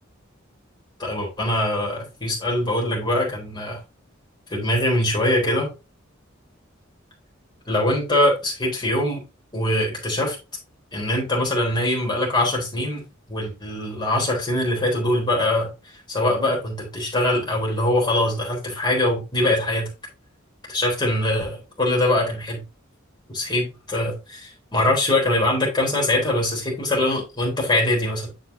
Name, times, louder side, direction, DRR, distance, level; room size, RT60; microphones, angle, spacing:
voice 1, 1.0-3.8 4.5-5.7 7.7-9.2 9.5-10.4 10.9-15.7 16.1-19.9 20.7-22.6 23.3-28.3, left 1 dB, 20° left, -2 dB, 3.9 m, -23 dB
8.2 x 6.6 x 2.8 m, 0.27 s
head